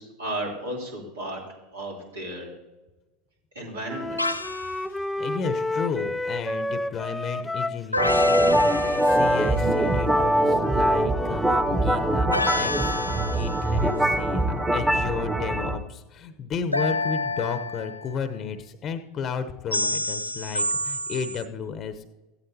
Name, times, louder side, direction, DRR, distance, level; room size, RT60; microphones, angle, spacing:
voice 1, 0.0-2.5 3.6-4.2, right 1 dB, 75° right, -2 dB, 3.7 m, -34 dB
Wind instrument woodwind instrument, 3.9-12.3, left 2 dB, 5° left, 0.5 m, -30 dB
sound 1, 4.2-4.7 7.9-9.6 12.3-13.7 16.7-18.2 19.7-21.4, left 2 dB, 85° left, 0.5 m, -29 dB
voice 2, 5.2-22.1, left 6 dB, 35° left, 11 dB, 0.9 m, -33 dB
sound 2, 8.0-15.8, right 1 dB, 10° right, 1.3 m, -23 dB
15.5 x 12.5 x 2.9 m, 1.1 s
figure-of-eight pair, 80°, 0 cm